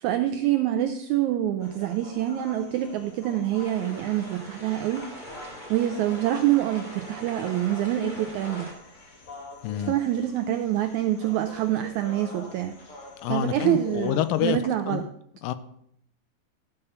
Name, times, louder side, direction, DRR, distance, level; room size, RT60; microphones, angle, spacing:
voice 1, 0.0-5.1 5.7-8.7 9.8-12.7 13.3-15.0, right 12 dB, 85° right, 9 dB, 1.7 m, -26 dB
sound 1, 1.6-14.5, left 2 dB, 45° left, 2.4 m, -45 dB
sound 2, 3.6-8.7, equal, 15° left, 1.9 m, -42 dB
voice 2, 9.6-9.9 13.2-14.6 14.9-15.0 15.4-15.5, left 11 dB, 85° left, 13 dB, 2.3 m, -27 dB
13.0 x 5.5 x 6.6 m, 0.72 s
omnidirectional pair, 4.0 m